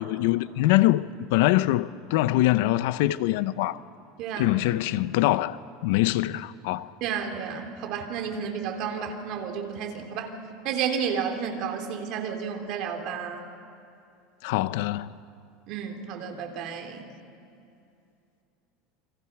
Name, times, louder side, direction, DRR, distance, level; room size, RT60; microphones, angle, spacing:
voice 1, 0.0-3.8 4.4-6.9 14.4-15.1, left 16 dB, 70° left, 0.7 m, -24 dB
voice 2, 4.2-4.5 7.0-10.4 10.6-13.4 15.7-17.1, right 7 dB, 50° right, 3.2 m, -31 dB
28.5 x 25.0 x 6.0 m
supercardioid pair, 150°, 0 cm